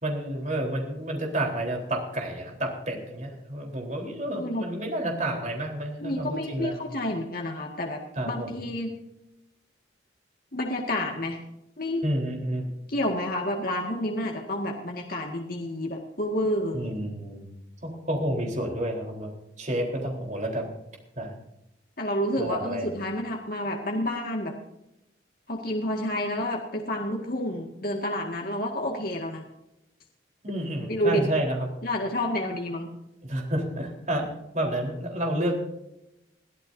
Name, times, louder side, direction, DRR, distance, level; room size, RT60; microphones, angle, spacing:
voice 1, 0.0-6.8 8.2-8.6 12.0-12.7 16.7-17.5 17.8-20.7 21.2-21.3 22.4-22.9 30.4-31.7 33.2-35.5, right 1 dB, 40° right, 1 dB, 3.9 m, -30 dB
voice 2, 4.3-4.7 6.0-8.0 8.3-8.9 10.5-11.4 11.8-12.1 12.9-17.0 22.0-24.5 25.5-29.4 30.9-31.2 31.8-32.9, left 1 dB, 50° left, 0 dB, 1.9 m, -29 dB
22.0 x 14.0 x 2.7 m, 0.87 s
head